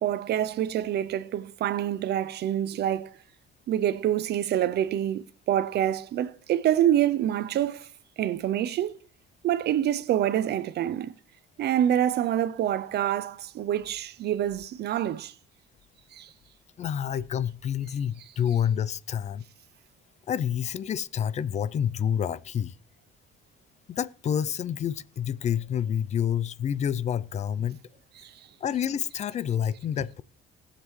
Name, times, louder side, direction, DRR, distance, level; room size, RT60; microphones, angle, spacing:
voice 1, 0.0-3.1 3.7-7.9 8.2-9.0 9.4-11.1 11.6-15.3 16.1-16.3 28.2-28.5, right 11 dB, 55° right, 0.5 m, -26 dB
voice 2, 16.8-19.4 20.3-22.7 23.9-27.8 28.6-30.2, left 9 dB, 35° left, 0.4 m, -28 dB
20.0 x 7.5 x 3.1 m
cardioid pair, 165°, 21 cm